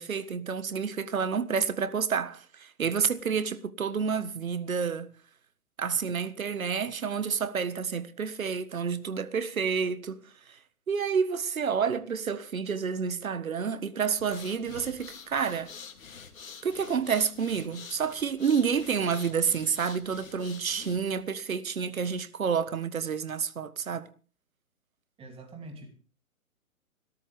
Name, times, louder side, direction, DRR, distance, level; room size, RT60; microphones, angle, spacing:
voice 1, 0.0-5.1 5.8-10.2 10.5-10.6 10.9-15.7 16.6-24.1, right 6 dB, 70° right, 1.6 m, -29 dB
sound 1, 14.1-21.2, left 6 dB, 65° left, 2.8 m, -47 dB
voice 2, 25.2-25.9, right 2 dB, 15° right, 2.9 m, -44 dB
25.0 x 13.5 x 3.5 m
figure-of-eight pair, 130°, 43 cm